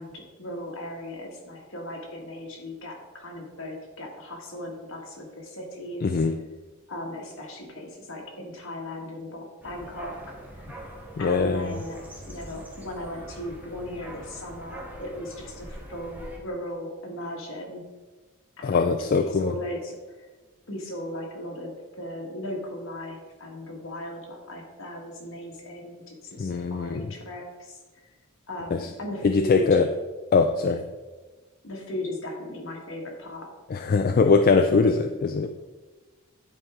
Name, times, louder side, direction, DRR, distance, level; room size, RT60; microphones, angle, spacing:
voice 1, 0.0-6.2 6.9-10.4 11.2-17.8 18.6-20.3 20.7-27.8 28.5-29.8 31.6-33.5, left 1 dB, 65° left, -1 dB, 1.8 m, -37 dB
voice 2, 6.0-6.3 11.2-11.8 18.6-19.5 26.4-27.1 28.7-28.8 29.2-29.9 30.3-30.8 33.7-35.5, left 4 dB, 45° left, 7 dB, 0.3 m, -22 dB
sound 1, 9.6-16.4, right 1 dB, 10° right, 1.1 m, -43 dB
10.5 x 4.7 x 3.7 m, 1.3 s
head